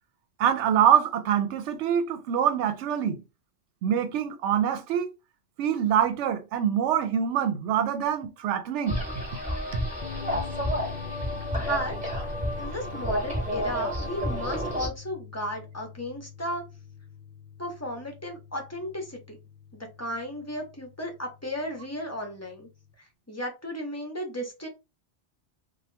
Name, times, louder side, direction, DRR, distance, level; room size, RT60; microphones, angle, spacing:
voice 1, 0.4-3.2 3.8-5.1 5.6-9.3, right 9 dB, 75° right, 0.9 m, -25 dB
sound 1, 8.9-14.9, equal, 5° right, 1.0 m, -30 dB
sound 2, 10.0-22.9, left 7 dB, 60° left, 0.5 m, -44 dB
voice 2, 11.5-11.9 12.6-16.6 17.6-19.4 20.0-22.7 23.3-24.7, equal, 15° left, 0.7 m, -34 dB
2.8 x 2.3 x 3.2 m
omnidirectional pair, 1.2 m